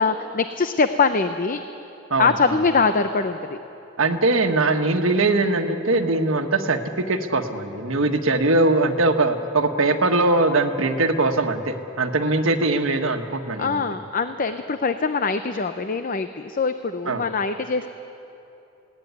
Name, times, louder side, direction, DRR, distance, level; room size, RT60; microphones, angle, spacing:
voice 1, 0.0-1.6 2.2-3.6 13.6-17.9, left 4 dB, 45° left, 9 dB, 0.7 m, -23 dB
voice 2, 2.1-2.5 4.0-6.8 7.1-13.8 17.1-17.2, right 2 dB, 90° right, 5 dB, 1.5 m, -21 dB
21.0 x 17.5 x 9.7 m, 2.9 s
head